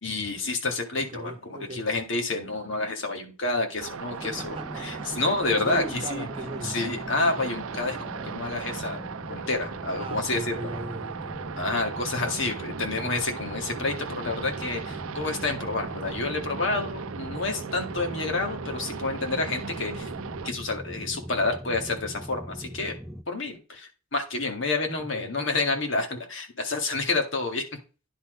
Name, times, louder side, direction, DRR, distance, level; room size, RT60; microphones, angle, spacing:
voice 1, 0.0-6.3 6.6-9.0 9.3-10.7 11.6-20.1 20.4-22.9 23.3-27.6, left 3 dB, 60° left, 2.0 m, -29 dB
voice 2, 1.1-1.9 4.2-5.2 5.5-7.0 9.9-11.6 16.7-16.9 25.1-25.3, right 2 dB, 25° right, 1.2 m, -38 dB
sound 1, 3.8-20.5, right 6 dB, 85° right, 0.5 m, -38 dB
sound 2, 4.2-23.2, equal, ahead, 0.5 m, -40 dB
10.0 x 4.3 x 5.0 m
head